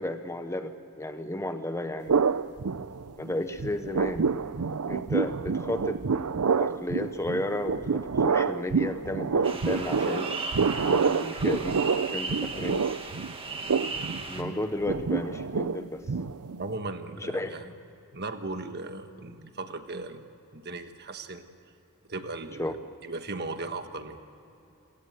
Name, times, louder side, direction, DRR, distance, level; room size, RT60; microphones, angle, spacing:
voice 1, 0.0-2.3 3.2-4.3 4.9-6.0 6.5-10.3 10.7-12.9 14.3-16.0 17.2-17.5 22.6-22.7, left 1 dB, 15° left, 9 dB, 0.9 m, -33 dB
sound 1, 2.1-3.3 3.6-16.7, right 5 dB, 85° right, 0.6 m, -28 dB
sound 2, 9.4-14.4, right 3 dB, 25° right, 1.8 m, -36 dB
voice 2, 16.6-17.7 18.1-20.2 20.5-21.4 22.1-22.7 23.0-24.2, right 3 dB, 50° right, 8 dB, 1.4 m, -37 dB
28.0 x 17.5 x 7.9 m, 2.8 s
head